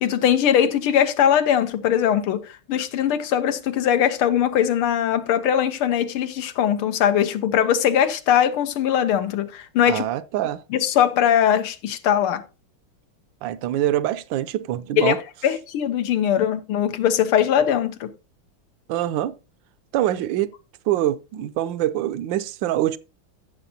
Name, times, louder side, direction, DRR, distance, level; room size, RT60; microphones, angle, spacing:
voice 1, 0.0-10.1 10.7-12.4 15.0-18.1, left 9 dB, 90° left, 1.8 m, -21 dB
voice 2, 9.9-10.6 13.4-15.2 18.9-19.3 19.9-20.5 20.9-23.0, right 13 dB, 75° right, 1.2 m, -24 dB
15.0 x 6.7 x 2.8 m
omnidirectional pair, 2.3 m